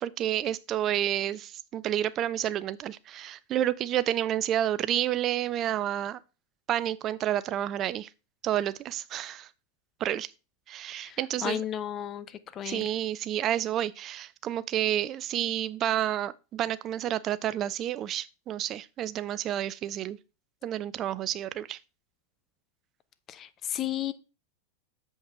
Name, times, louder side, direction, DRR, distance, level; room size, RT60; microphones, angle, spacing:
voice 1, 0.0-6.2 6.7-8.1 8.4-9.5 10.0-10.3 10.7-11.6 12.6-20.2 20.6-21.8, right 11 dB, 30° right, 0.3 m, -30 dB
voice 2, 11.0-12.9 23.3-24.1, left 11 dB, 30° left, 0.7 m, -34 dB
7.3 x 5.4 x 4.6 m
figure-of-eight pair, 90°, 0 cm